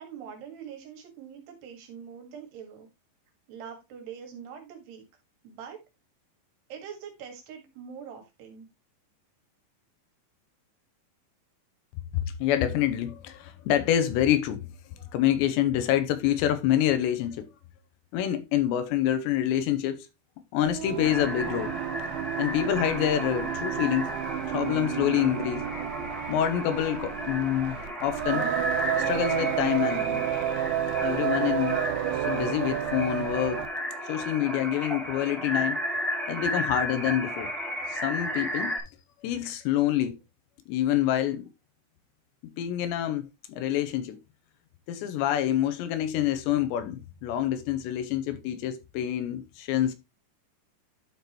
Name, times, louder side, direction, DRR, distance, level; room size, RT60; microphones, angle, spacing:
voice 1, 0.0-2.9 3.5-5.1 5.4-5.8 6.7-8.7, right 7 dB, 70° right, 3.8 m, -43 dB
voice 2, 12.1-14.7 15.1-17.5 18.1-20.1 20.5-21.7 22.4-24.1 24.4-25.7 26.3-28.5 29.0-30.2 31.0-31.8 32.3-33.6 34.1-35.8 36.3-37.5 37.9-38.8 39.2-40.2 40.7-41.5 42.6-44.2 44.9-49.9, left 11 dB, 85° left, 3.0 m, -27 dB
Singing, 20.6-33.8, right 11 dB, 85° right, 3.2 m, -31 dB
sound 1, 21.0-38.8, equal, ahead, 0.6 m, -34 dB
11.5 x 4.8 x 2.9 m
omnidirectional pair, 5.1 m